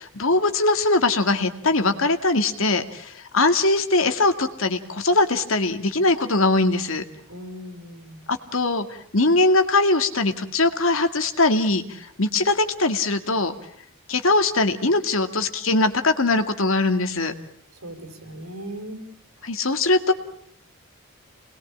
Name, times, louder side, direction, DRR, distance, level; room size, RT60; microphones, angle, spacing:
voice 1, 0.0-7.0 8.3-8.9 9.1-13.5 14.1-17.3 19.4-20.1, left 2 dB, 70° left, 8 dB, 2.2 m, -21 dB
voice 2, 7.3-8.2 17.8-19.0, right 1 dB, 80° right, 6 dB, 5.8 m, -38 dB
28.5 x 21.0 x 8.8 m, 0.63 s
head